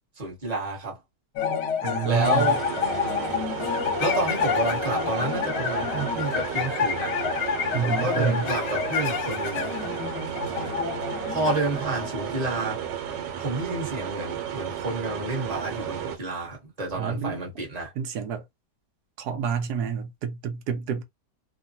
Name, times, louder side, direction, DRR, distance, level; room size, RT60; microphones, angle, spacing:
voice 1, 0.2-1.0 2.0-2.6 4.0-7.2 7.8-9.7 11.3-12.8 13.4-17.9, right 2 dB, 25° right, 1.0 m, -30 dB
sound 1, 1.4-12.9, left 7 dB, 80° left, 1.3 m, -28 dB
voice 2, 1.8-2.6 7.7-8.5 16.9-17.4 18.0-18.4 19.2-21.0, right 6 dB, 70° right, 1.0 m, -28 dB
sound 2, 2.1-16.2, right 9 dB, 90° right, 1.3 m, -33 dB
3.0 x 2.2 x 2.7 m
omnidirectional pair, 1.9 m